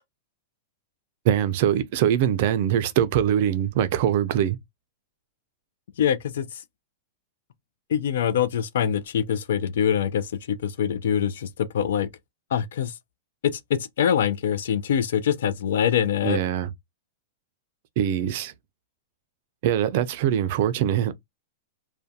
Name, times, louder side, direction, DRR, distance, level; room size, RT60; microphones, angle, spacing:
voice 1, 1.2-4.6 16.2-16.7 18.0-18.5 19.6-21.1, right 10 dB, 45° right, 0.3 m, -23 dB
voice 2, 6.0-6.6 7.9-12.1 12.5-12.9 13.4-16.4, left 8 dB, 70° left, 0.4 m, -24 dB
2.4 x 2.1 x 2.6 m
supercardioid pair, 165°, 0 cm